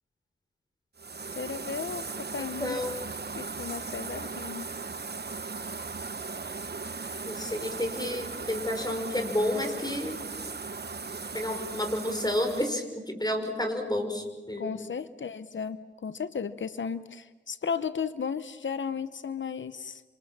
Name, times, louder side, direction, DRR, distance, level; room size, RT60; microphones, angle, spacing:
sound 1, 1.0-12.7, right 4 dB, 60° right, 1.1 m, -38 dB
voice 1, 1.3-2.8 3.4-4.7 14.6-20.0, left 6 dB, 90° left, 13 dB, 0.8 m, -35 dB
voice 2, 2.6-2.9 7.3-10.2 11.3-14.7, left 1 dB, 20° left, 5 dB, 5.8 m, -30 dB
28.5 x 26.0 x 7.4 m, 1.2 s
wide cardioid pair, 60°, 19 cm